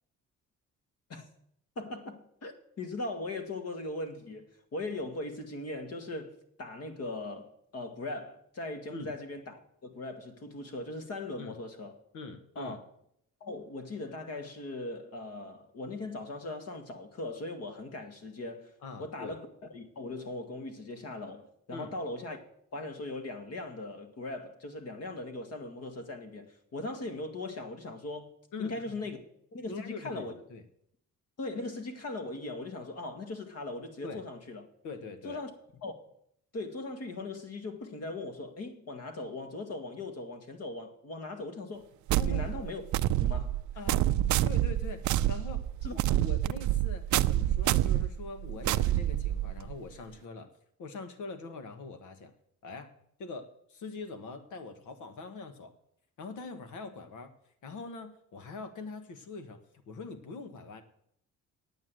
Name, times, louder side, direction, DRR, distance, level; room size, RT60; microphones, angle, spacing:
voice 1, 1.8-11.9 12.6-12.8 13.4-18.7 19.0-22.4 22.7-28.3 28.6-29.2 29.5-30.3 31.4-34.7 35.2-35.5 35.8-36.0 36.5-41.9 42.2-42.8 43.2-43.6 43.9-44.0 45.8-45.9, left 2 dB, 55° left, 2.0 m, -39 dB
voice 2, 12.1-12.8 18.8-19.4 21.7-21.9 28.5-28.8 29.6-30.6 34.0-34.2 34.8-35.4 42.1-42.5 43.8-44.0 44.4-45.6 45.9-50.5 50.8-52.3 52.6-52.9 53.2-55.7 56.2-57.3 57.6-60.8, left 3 dB, 80° left, 1.5 m, -43 dB
sound 1, 42.1-49.7, right 13 dB, 75° right, 0.5 m, -28 dB
9.2 x 8.8 x 7.7 m
cardioid pair, 90°, 30 cm